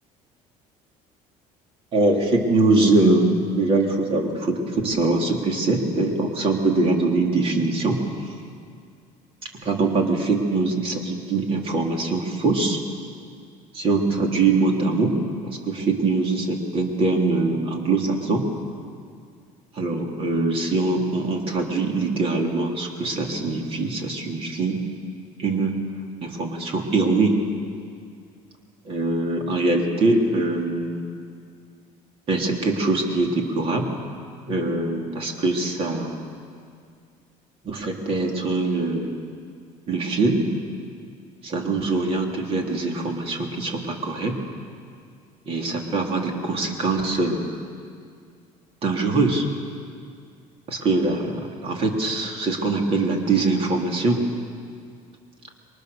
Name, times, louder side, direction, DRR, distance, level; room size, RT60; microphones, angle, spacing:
voice 1, 1.9-8.0 9.5-12.8 13.7-15.2 15.4-18.5 19.7-24.8 25.4-25.8 26.2-27.4 28.8-31.1 32.3-33.9 34.5-36.2 37.6-39.2 39.9-40.4 41.4-44.4 45.5-47.5 48.8-49.4 50.7-54.2, right 3 dB, 40° right, 1 dB, 3.2 m, -23 dB
28.0 x 23.0 x 6.8 m, 2.2 s
cardioid pair, 150°, 15 cm